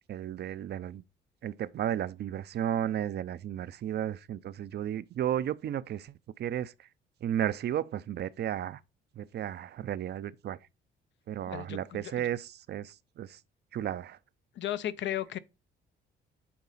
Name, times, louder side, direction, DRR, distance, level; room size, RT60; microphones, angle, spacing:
voice 1, 0.1-1.0 1.4-6.1 6.4-6.7 7.2-8.8 9.2-10.6 11.3-13.4 13.7-14.2, right 10 dB, 55° right, 0.5 m, -33 dB
voice 2, 11.5-12.3 14.6-15.4, left 12 dB, 70° left, 0.6 m, -35 dB
8.6 x 4.1 x 3.9 m
cardioid pair, 90°, 20 cm